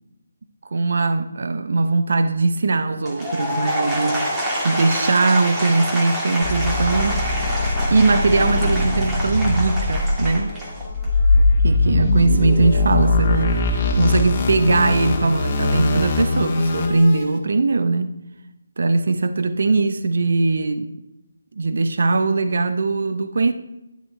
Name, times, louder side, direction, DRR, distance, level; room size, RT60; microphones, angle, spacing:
voice 1, 0.7-4.2 4.6-7.2 7.9-10.5 11.6-18.1 18.8-20.9 21.6-23.5, right 3 dB, 55° right, 0.8 m, -20 dB
Applause / Crowd, 3.0-11.2, equal, 10° right, 1.8 m, -27 dB
sound 1, 6.4-17.2, left 2 dB, 25° left, 1.6 m, -21 dB
12.0 x 10.5 x 3.4 m
figure-of-eight pair, 150°, 0 cm